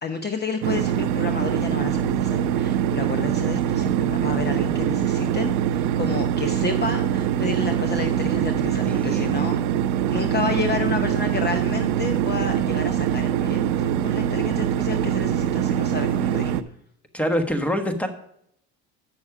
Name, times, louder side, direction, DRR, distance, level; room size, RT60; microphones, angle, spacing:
voice 1, 0.0-9.6 10.1-16.6, left 4 dB, 30° left, 7 dB, 0.8 m, -30 dB
sound 1, 0.6-16.6, right 10 dB, 75° right, 0.6 m, -23 dB
voice 2, 8.9-9.3 17.1-18.1, equal, 5° left, 7 dB, 1.3 m, -25 dB
8.9 x 6.3 x 4.8 m, 0.71 s
supercardioid pair, 90°, 35 cm